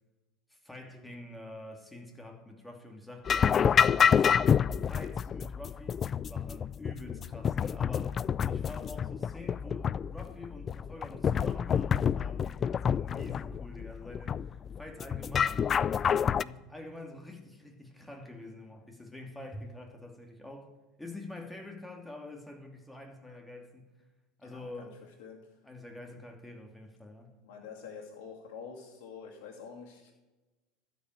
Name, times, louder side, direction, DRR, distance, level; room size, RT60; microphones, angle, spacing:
voice 1, 0.5-6.0 6.3-8.2 8.4-15.7 16.4-20.7 21.0-23.9 24.4-24.9 25.6-27.3, left 2 dB, 5° left, 2 dB, 2.6 m, -46 dB
sound 1, 3.3-16.4, left 7 dB, 35° left, 0.3 m, -28 dB
voice 2, 24.4-24.9 25.2-25.4 27.4-30.1, left 6 dB, 60° left, -2 dB, 2.6 m, -46 dB
12.5 x 5.5 x 9.1 m, 1.1 s
hypercardioid pair, 75°, 0 cm